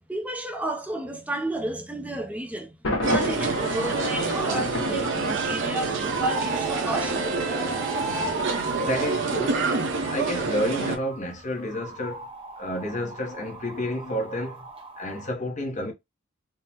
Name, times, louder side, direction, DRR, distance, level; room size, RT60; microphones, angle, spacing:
voice 1, 0.1-2.7 3.0-7.3, right 1 dB, 5° right, 0.4 m, -32 dB
Thunder, 2.8-5.8, left 1 dB, 65° left, 1.1 m, -30 dB
sound 1, 3.0-11.0, right 4 dB, 65° right, 0.7 m, -27 dB
sound 2, 3.4-15.3, right 2 dB, 25° right, 0.8 m, -38 dB
voice 2, 8.8-9.6 10.1-12.3 12.6-14.6 15.0-15.9, left 1 dB, 35° left, 0.8 m, -30 dB
3.5 x 2.0 x 2.8 m
head